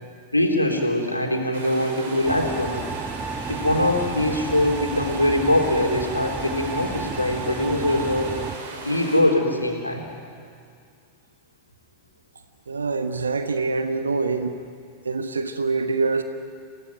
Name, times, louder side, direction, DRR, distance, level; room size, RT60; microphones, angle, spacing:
voice 1, 0.3-2.9 3.5-8.3 8.8-10.0, left 1 dB, 85° left, 1 dB, 3.7 m, -22 dB
sound 1, 1.5-9.2, right 4 dB, 55° right, 4.9 m, -37 dB
sound 2, 2.2-8.6, right 4 dB, 15° right, 1.1 m, -33 dB
voice 2, 12.7-14.6 15.0-16.2, right 4 dB, 75° right, 8 dB, 1.3 m, -25 dB
28.5 x 18.0 x 9.4 m, 2.2 s
figure-of-eight pair, 90°, 0 cm